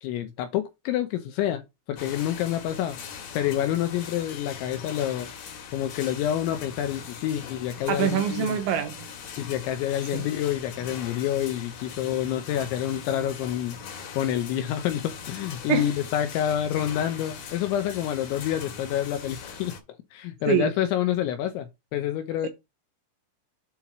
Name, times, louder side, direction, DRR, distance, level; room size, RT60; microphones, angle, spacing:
voice 1, 0.0-5.3 5.7-8.6 9.4-13.8 14.1-22.5, left 11 dB, 85° left, 2.7 m, -28 dB
sound 1, 2.0-19.8, left 6 dB, 65° left, 2.4 m, -41 dB
voice 2, 7.9-9.1 10.1-10.2 15.7-15.9 20.5-20.7 22.4-22.5, right 10 dB, 80° right, 2.8 m, -25 dB
8.1 x 2.9 x 5.9 m
omnidirectional pair, 5.8 m